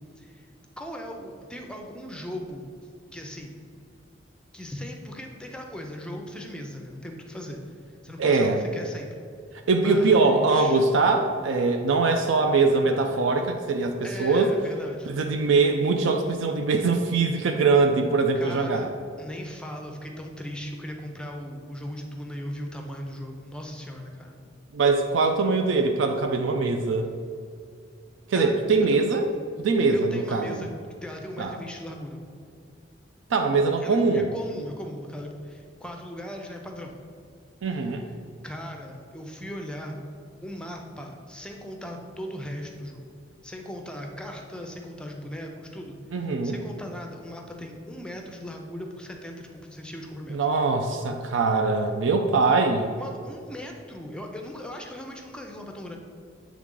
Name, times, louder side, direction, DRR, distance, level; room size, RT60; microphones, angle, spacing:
voice 1, 0.2-0.5 0.8-2.7 3.1-3.5 4.5-7.8 8.0-9.3 9.8-10.8 14.0-15.1 18.3-18.9 19.2-24.4 28.3-28.6 29.9-30.7 31.0-32.2 33.8-37.0 38.0-38.1 38.4-40.0 40.4-43.1 43.4-50.4 53.0-56.0, equal, 5° left, 2 dB, 0.5 m, -38 dB
voice 2, 8.2-8.6 9.7-14.5 15.1-18.9 24.7-27.1 28.3-29.3 29.6-30.6 31.4-31.5 33.3-34.3 37.6-38.0 46.1-46.6 50.3-52.9, right 3 dB, 85° right, 4 dB, 0.4 m, -22 dB
7.4 x 3.6 x 3.7 m, 2.3 s
head